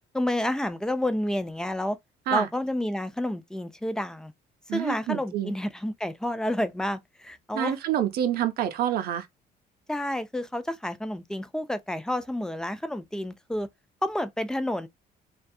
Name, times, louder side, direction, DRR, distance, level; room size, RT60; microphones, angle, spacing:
voice 1, 0.1-2.0 2.3-4.3 4.7-7.8 9.9-13.7 14.0-14.9, left 1 dB, 5° left, 0.3 m, -30 dB
voice 2, 4.7-5.5 7.5-9.3, right 10 dB, 65° right, 0.5 m, -27 dB
2.3 x 2.2 x 2.6 m
cardioid pair, 110°, 17 cm